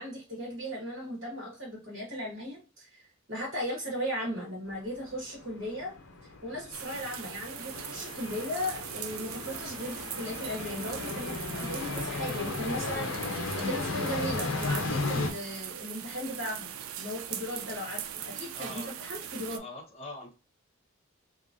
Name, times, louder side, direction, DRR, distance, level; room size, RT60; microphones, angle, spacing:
voice 1, 0.0-5.9 6.2-16.7 17.0-19.6, equal, 65° right, -5 dB, 1.3 m, -37 dB
sound 1, 4.7-15.3, left 3 dB, 75° left, 0.6 m, -35 dB
sound 2, 6.7-19.6, right 9 dB, 90° right, 0.4 m, -41 dB
voice 2, 18.5-18.9 19.6-20.3, left 2 dB, 30° left, -3 dB, 1.1 m, -43 dB
2.9 x 2.5 x 2.5 m, 0.32 s
head